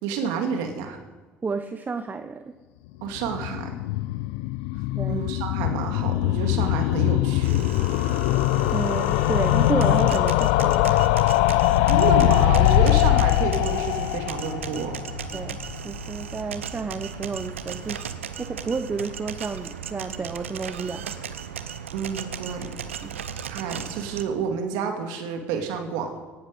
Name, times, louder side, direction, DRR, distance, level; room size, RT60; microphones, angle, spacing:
voice 1, 0.0-1.0 3.0-3.8 5.1-7.7 11.9-15.0 21.9-22.7 23.5-26.2, right 6 dB, 70° right, 5 dB, 2.2 m, -29 dB
voice 2, 1.4-2.6 5.0-5.2 8.7-11.9 15.3-18.1 18.4-21.2 23.0-23.2, right 4 dB, 25° right, 10 dB, 0.8 m, -31 dB
sound 1, 3.1-16.1 16.4-16.5 16.7-16.8 17.0-17.1, left 17 dB, 75° left, 0.5 m, -22 dB
sound 2, 7.4-24.2, right 7 dB, 90° right, 0.7 m, -36 dB
18.0 x 11.5 x 5.2 m, 1.3 s
hypercardioid pair, 60°, 7 cm